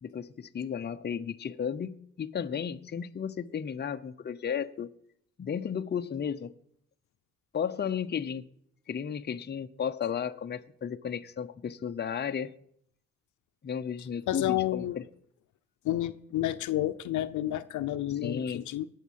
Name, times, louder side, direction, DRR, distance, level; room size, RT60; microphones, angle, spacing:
voice 1, 0.0-4.9 5.4-6.5 7.5-8.4 8.9-12.5 13.6-15.0 18.2-18.6, left 7 dB, 35° left, 0.8 m, -34 dB
voice 2, 14.3-15.0 15.8-18.9, left 13 dB, 75° left, 0.8 m, -30 dB
18.5 x 7.3 x 7.5 m
cardioid pair, 90°, 30 cm